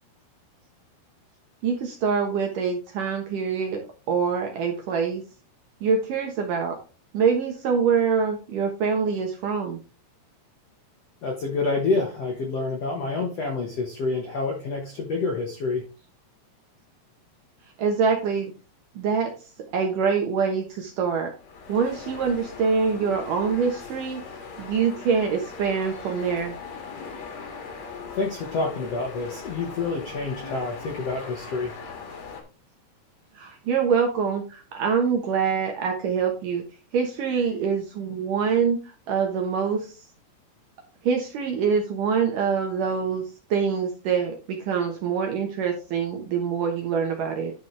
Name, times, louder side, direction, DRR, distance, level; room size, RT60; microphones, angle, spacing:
voice 1, 1.6-5.2 5.8-6.8 7.1-9.8 17.8-18.5 19.0-19.3 19.7-21.3 21.7-24.2 24.6-26.6 33.4-36.6 36.9-38.8 39.1-39.9 41.0-43.2 43.5-47.5, right 6 dB, 70° right, 3 dB, 2.2 m, -25 dB
voice 2, 11.2-15.8 28.1-31.7, left 3 dB, 70° left, 1 dB, 1.5 m, -28 dB
sound 1, 21.3-32.4, left 5 dB, 50° left, 2.3 m, -40 dB
11.0 x 6.1 x 3.2 m, 0.33 s
omnidirectional pair, 5.0 m